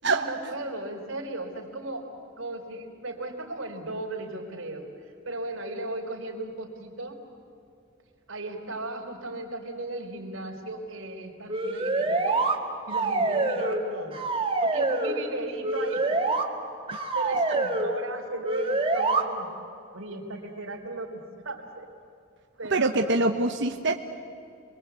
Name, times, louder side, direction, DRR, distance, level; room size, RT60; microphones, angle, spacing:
voice 1, 0.0-2.1 2.4-7.2 8.3-12.4 12.9-14.2 14.6-16.0 17.1-19.5 19.9-21.9 22.6-23.2, right 2 dB, 80° right, 3 dB, 4.1 m, -36 dB
sound 1, 11.5-12.6 12.9-13.8 14.1-15.2 15.6-16.4 16.9-17.9 18.4-19.2, right 3 dB, 25° right, 2.1 m, -26 dB
voice 2, 22.7-24.0, right 2 dB, 60° right, 4 dB, 1.1 m, -24 dB
28.5 x 22.5 x 8.3 m, 2.5 s
head